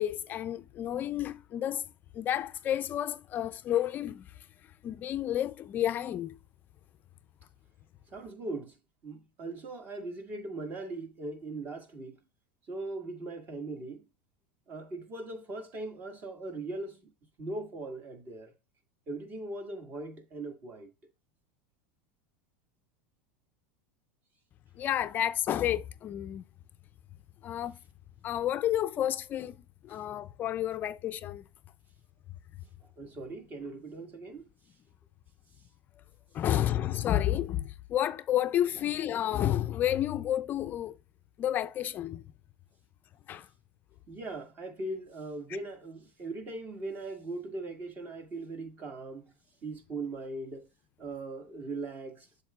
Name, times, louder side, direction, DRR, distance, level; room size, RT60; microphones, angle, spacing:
voice 1, 0.0-1.9 2.1-4.3 4.8-6.4 24.8-26.4 27.4-27.7 28.2-29.6 29.8-31.4 36.3-40.9 41.4-42.2 43.3-43.5, left 11 dB, 35° left, 0.4 m, -30 dB
voice 2, 8.1-8.8 9.0-12.2 12.7-14.0 14.7-17.0 17.4-18.5 19.1-20.9 33.0-34.5 44.1-49.2 49.6-50.7 51.0-52.3, right 2 dB, 35° right, 1.9 m, -39 dB
7.7 x 7.2 x 2.4 m
supercardioid pair, 115°, 5 cm